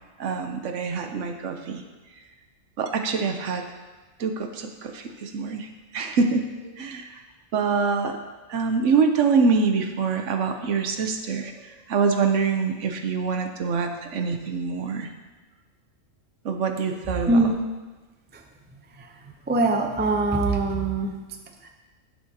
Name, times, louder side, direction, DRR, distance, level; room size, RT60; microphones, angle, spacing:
voice 1, 0.2-1.8 2.8-3.6 4.2-5.7 5.9-6.5 6.8-7.2 7.5-8.2 8.5-11.5 11.9-15.1 16.4-17.4, right 5 dB, 65° right, 5 dB, 1.0 m, -25 dB
voice 2, 19.5-21.1, right 2 dB, 15° right, 3 dB, 0.3 m, -22 dB
11.0 x 7.4 x 2.8 m, 1.3 s
omnidirectional pair, 1.4 m